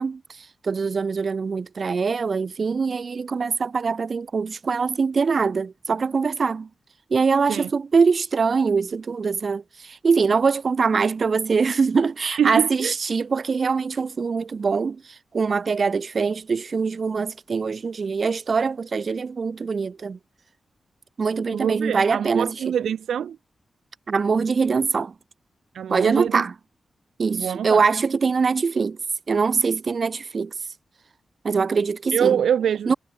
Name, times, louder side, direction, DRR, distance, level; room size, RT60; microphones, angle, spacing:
voice 1, 0.0-6.7 7.1-20.2 21.2-22.6 24.1-25.1 25.9-26.5 27.2-29.0 29.3-30.5 31.4-32.4 32.9-33.0, right 5 dB, 60° right, 2.2 m, -23 dB
voice 2, 12.4-12.9 21.5-23.4 25.7-26.4 27.3-27.8 32.1-32.9, right 8 dB, 85° right, 0.4 m, -24 dB
cardioid pair, 45°, 0 cm